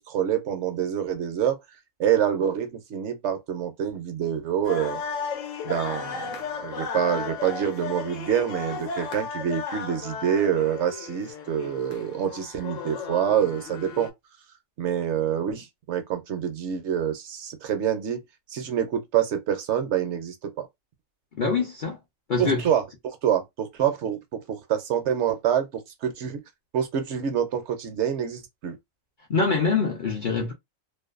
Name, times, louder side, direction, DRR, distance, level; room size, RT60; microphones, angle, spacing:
voice 1, 0.0-1.6 2.0-5.0 5.6-14.1 14.8-18.2 18.5-20.7 22.4-26.4 26.7-28.8, right 9 dB, 65° right, 0.8 m, -26 dB
sound 1, 4.6-14.1, left 5 dB, 75° left, 1.0 m, -35 dB
voice 2, 21.3-22.0 22.3-22.6 29.3-30.5, left 4 dB, 55° left, 0.6 m, -24 dB
2.5 x 2.2 x 2.3 m
omnidirectional pair, 1.4 m